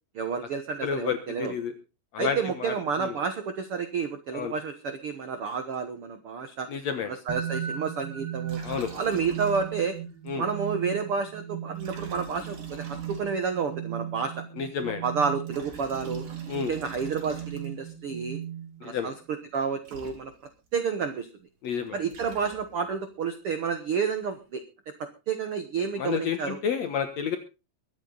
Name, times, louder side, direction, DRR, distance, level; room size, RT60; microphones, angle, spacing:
voice 1, 0.1-1.5 2.2-6.7 7.1-10.0 10.4-14.4 15.0-16.2 16.7-18.4 18.8-19.1 19.5-20.3 20.7-21.3 21.9-24.6 25.0-26.6, right 5 dB, 85° right, 8 dB, 1.2 m, -30 dB
voice 2, 0.8-1.7 2.1-3.1 4.3-4.5 6.7-7.1 8.6-8.9 10.3-10.4 14.6-15.0 16.5-16.7 18.8-19.1 21.6-22.0 26.0-27.4, left 7 dB, 65° left, 8 dB, 1.8 m, -30 dB
sound 1, 7.3-19.0, right 10 dB, 35° right, 1.7 m, -37 dB
Liquid, 8.5-10.0 10.3-10.4 11.7-13.6 15.3-17.9 19.6-19.7 19.8-20.7 21.8-23.0, right 4 dB, 60° right, 4.8 m, -46 dB
22.5 x 9.0 x 3.9 m, 0.30 s
omnidirectional pair, 4.5 m